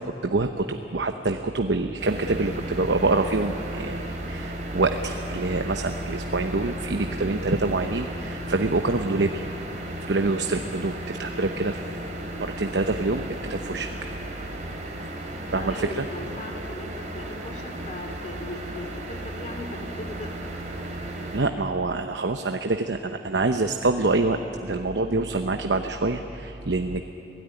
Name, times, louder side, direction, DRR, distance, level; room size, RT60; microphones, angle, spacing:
voice 1, 0.0-9.4 9.9-11.9 12.3-13.9 15.5-16.1 21.3-27.0, right 3 dB, 85° right, 6 dB, 0.9 m, -26 dB
sound 1, 2.0-21.4, right 1 dB, 45° right, 3.1 m, -35 dB
voice 2, 15.3-20.5, left 1 dB, 40° left, 4 dB, 2.5 m, -38 dB
25.0 x 17.0 x 9.8 m, 2.9 s
head